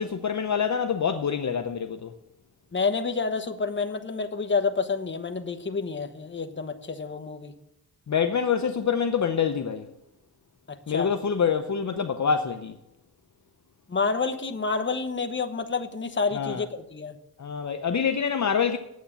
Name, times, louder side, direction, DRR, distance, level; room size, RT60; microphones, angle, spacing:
voice 1, 0.0-2.1 8.1-9.9 10.9-12.8 16.3-16.6 17.4-18.8, left 7 dB, 45° left, 0.7 m, -26 dB
voice 2, 2.7-7.5 10.7-11.1 13.9-17.2, left 4 dB, 30° left, 1.1 m, -29 dB
9.5 x 8.1 x 7.4 m
wide cardioid pair, 95°, 40 cm